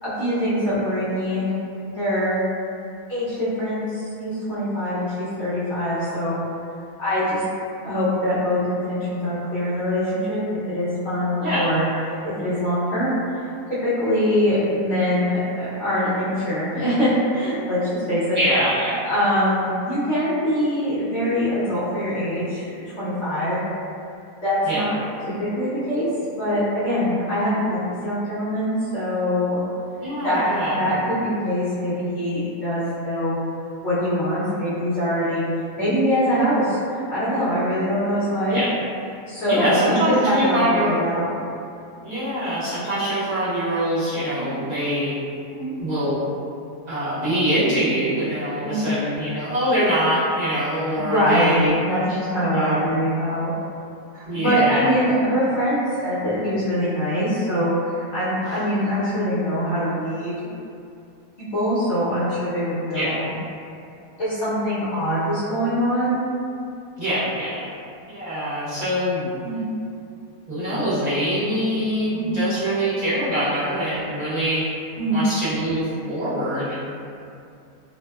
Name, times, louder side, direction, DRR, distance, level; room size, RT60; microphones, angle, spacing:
voice 1, 0.0-1.5 2.0-2.4 3.1-6.4 7.0-7.4 7.8-10.4 10.7-11.9 12.4-13.5 13.8-18.4 19.0-22.7 23.0-23.6 24.4-25.0 25.4-26.1 26.4-29.6 30.2-33.4 33.8-35.5 35.8-38.6 39.3-41.2 41.9-42.1 44.3-44.5 45.5-45.7 48.6-48.8 50.9-53.5 54.1-60.5 61.5-63.3 64.2-66.2 69.4-69.6 72.1-72.4 75.0-75.2, equal, 55° left, -13 dB, 0.8 m, -23 dB
voice 2, 11.4-11.7 18.3-19.0 24.6-24.8 30.0-30.8 38.5-38.7 39.5-41.0 42.0-45.1 45.8-46.2 46.9-51.7 52.5-52.9 54.3-55.0 62.9-63.2 67.0-67.7 68.1-69.3 70.5-74.6 75.1-76.7, equal, 40° right, -14 dB, 0.7 m, -24 dB
2.6 x 2.1 x 2.2 m, 2.5 s
omnidirectional pair, 1.5 m